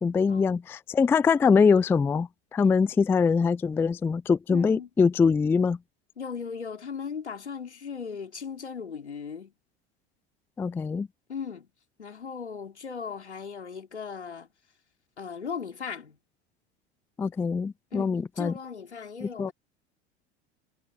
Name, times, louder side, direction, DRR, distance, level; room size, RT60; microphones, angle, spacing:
voice 1, 0.0-5.8 10.6-11.1 17.2-18.5 19.2-19.5, left 5 dB, 5° left, 0.3 m, -23 dB
voice 2, 4.5-4.9 6.2-9.5 11.3-11.7 12.0-14.5 15.2-16.2 17.9-19.5, left 6 dB, 80° left, 4.2 m, -37 dB
figure-of-eight pair, 75°, 33 cm